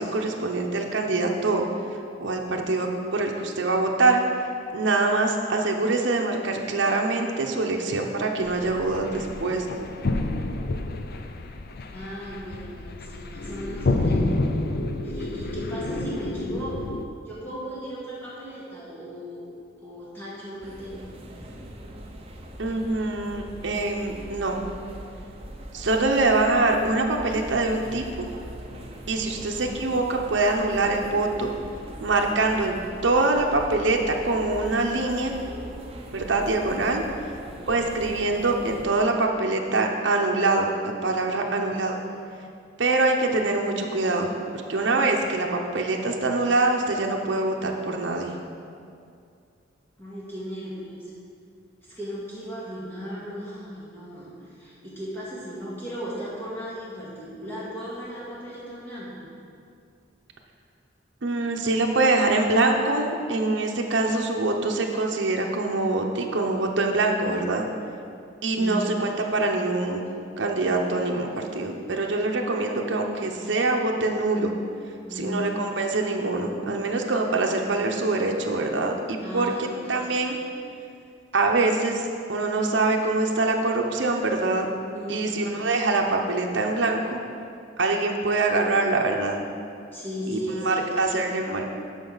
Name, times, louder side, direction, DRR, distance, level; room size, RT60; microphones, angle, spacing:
voice 1, 0.0-4.2 4.7-9.7 22.6-24.6 25.7-28.3 29.1-31.5 32.0-32.7 33.0-35.4 36.1-37.0 37.7-42.0 42.8-48.4 61.2-67.6 68.4-70.1 70.4-74.5 75.1-80.4 81.3-84.7 85.1-87.2 87.8-89.4 90.3-90.4 90.6-91.6, right 2 dB, 70° right, 1 dB, 0.8 m, -24 dB
sound 1, 8.4-17.0, left 2 dB, 55° left, 0.5 m, -29 dB
voice 2, 11.9-14.4 15.0-16.9 17.2-19.4 19.8-21.1 41.3-41.6 42.1-42.2 50.0-51.1 51.9-59.3 68.6-69.2 75.1-75.7 79.2-80.1 84.9-85.6 89.9-91.3, equal, 10° left, -9 dB, 1.9 m, -36 dB
sound 2, 20.6-38.8, right 1 dB, 30° right, 0.8 m, -41 dB
12.5 x 5.2 x 4.0 m, 2.4 s
head